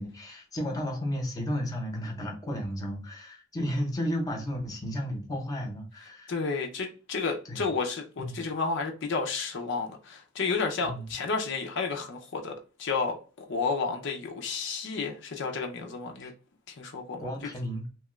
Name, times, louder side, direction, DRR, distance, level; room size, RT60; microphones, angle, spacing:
voice 1, 0.0-6.3 7.5-7.7 8.2-8.4 10.8-11.1 16.2-16.3 17.2-17.9, equal, 20° left, 0.7 m, -33 dB
voice 2, 6.3-16.3 16.8-17.3, left 4 dB, 65° left, 0.5 m, -31 dB
2.9 x 2.3 x 3.0 m
head